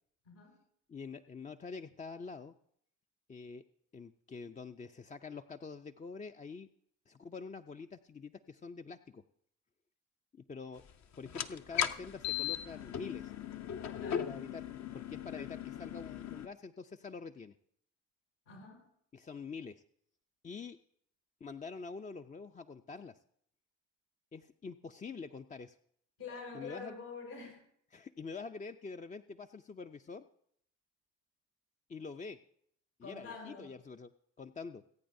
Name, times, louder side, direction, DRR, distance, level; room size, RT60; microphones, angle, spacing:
voice 1, 0.2-0.6 14.0-14.4 18.5-18.9 26.2-27.6 33.0-33.7, left 4 dB, 85° left, -3 dB, 6.5 m, -46 dB
voice 2, 0.9-2.5 3.3-3.6 3.9-6.7 7.1-9.2 10.3-10.8 11.2-13.3 14.0-14.6 14.9-17.5 19.1-19.8 20.4-20.8 21.4-23.2 24.3-25.8 26.5-27.0 27.9-30.3 31.9-32.4 33.0-34.1 34.4-34.8, left 4 dB, 20° left, 7 dB, 0.5 m, -46 dB
sound 1, 11.3-16.5, left 10 dB, 50° left, 0.8 m, -38 dB
25.5 x 8.6 x 2.7 m, 0.68 s
hypercardioid pair, 60°, 36 cm